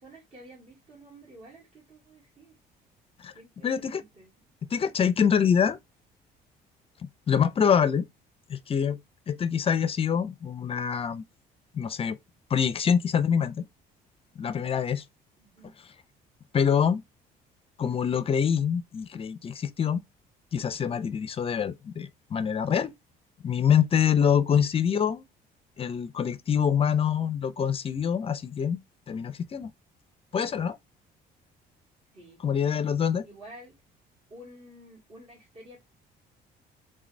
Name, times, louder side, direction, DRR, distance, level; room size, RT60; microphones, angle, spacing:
voice 1, 0.0-2.6 3.3-4.3 15.4-15.7 32.1-32.4 33.2-33.8 34.3-35.8, right 1 dB, 40° right, 2.2 m, -50 dB
voice 2, 3.6-4.0 4.7-5.8 7.0-8.1 8.5-9.0 9.3-11.2 11.7-12.2 12.5-13.6 14.4-15.0 16.5-17.0 17.8-20.0 20.5-22.9 23.4-25.2 25.8-28.8 29.1-29.7 30.3-30.8 32.4-33.2, left 7 dB, 35° left, 0.5 m, -25 dB
3.8 x 3.8 x 3.1 m
cardioid pair, 110°, 17 cm